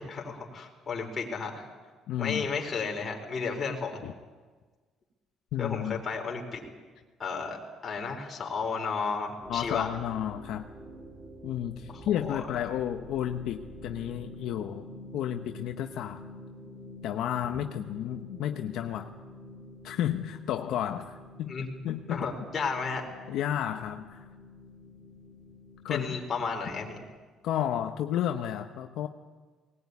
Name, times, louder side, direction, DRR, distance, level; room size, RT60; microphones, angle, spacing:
voice 1, 0.0-1.7 2.2-4.0 5.6-6.6 7.2-9.9 11.9-12.4 21.5-21.7 22.1-23.1 25.9-27.0, left 5 dB, 30° left, 1 dB, 4.2 m, -33 dB
voice 2, 2.1-2.5 4.0-4.1 5.5-6.0 9.5-10.7 11.4-14.9 15.1-16.2 17.0-19.1 19.8-21.6 21.8-22.3 23.3-24.2 25.8-26.2 27.4-29.1, left 11 dB, 70° left, 5 dB, 1.0 m, -32 dB
sound 1, 9.4-27.0, equal, 15° right, 4.6 m, -48 dB
19.5 x 19.5 x 9.7 m, 1.4 s
cardioid pair, 145°, 0 cm